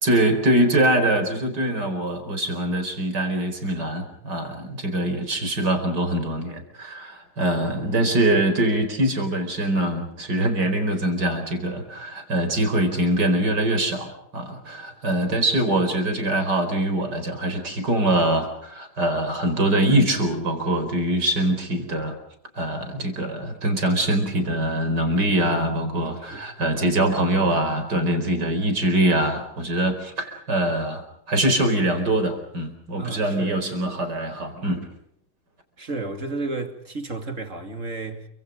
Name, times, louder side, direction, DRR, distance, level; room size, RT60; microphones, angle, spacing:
voice 1, 0.0-22.2 22.6-34.8, right 1 dB, 55° right, 5.2 m, -23 dB
voice 2, 7.6-8.2 26.3-26.5 33.0-33.7 35.8-38.3, right 3 dB, 40° right, 2.9 m, -33 dB
29.5 x 25.5 x 5.2 m
omnidirectional pair, 2.1 m